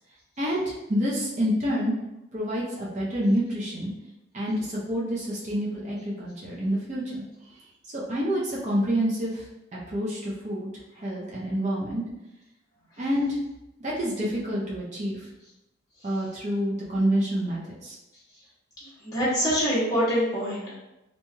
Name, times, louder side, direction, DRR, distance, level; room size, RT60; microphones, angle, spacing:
voice 1, 0.4-1.9 2.3-3.9 4.3-7.2 7.9-10.7 11.0-12.0 13.0-13.4 13.8-15.2 16.0-18.0, equal, 35° right, -6 dB, 0.6 m, -28 dB
voice 2, 19.0-20.7, equal, 20° left, -11 dB, 1.2 m, -25 dB
3.1 x 2.7 x 2.2 m, 0.93 s
head